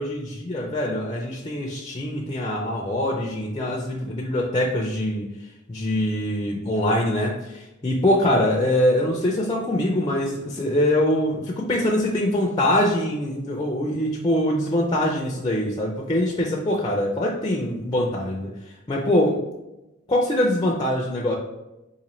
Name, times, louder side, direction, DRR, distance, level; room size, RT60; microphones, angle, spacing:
voice 1, 0.0-5.3 5.7-18.5 18.9-19.4 20.1-21.3, left 1 dB, 20° left, -1 dB, 0.4 m, -23 dB
3.9 x 2.6 x 3.0 m, 0.95 s
head